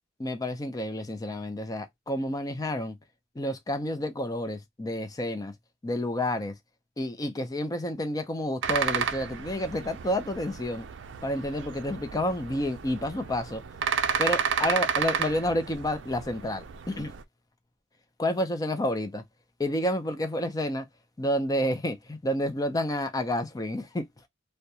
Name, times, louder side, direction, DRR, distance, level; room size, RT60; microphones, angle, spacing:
voice 1, 0.2-3.0 3.4-5.5 5.8-6.5 7.0-10.9 11.2-13.6 14.2-17.1 18.2-19.2 19.6-20.9 21.2-24.3, left 1 dB, 20° left, 0.5 m, -30 dB
sound 1, 8.6-17.2, right 7 dB, 80° right, 0.4 m, -32 dB
2.3 x 2.2 x 2.7 m
head